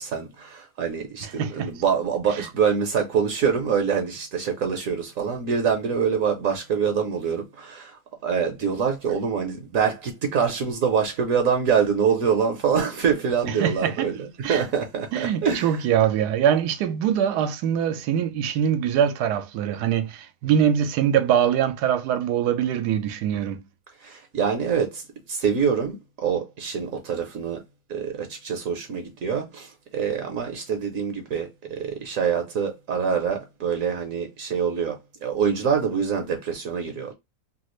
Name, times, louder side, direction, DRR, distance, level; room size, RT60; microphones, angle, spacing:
voice 1, 0.0-15.8 24.0-25.0 25.3-27.6 27.9-37.1, right 6 dB, 65° right, 1.0 m, -25 dB
voice 2, 1.2-1.7 2.4-2.5 13.5-14.1 14.4-14.6 15.1-23.7, right 9 dB, 85° right, 1.1 m, -23 dB
3.2 x 2.4 x 2.9 m
omnidirectional pair, 1.7 m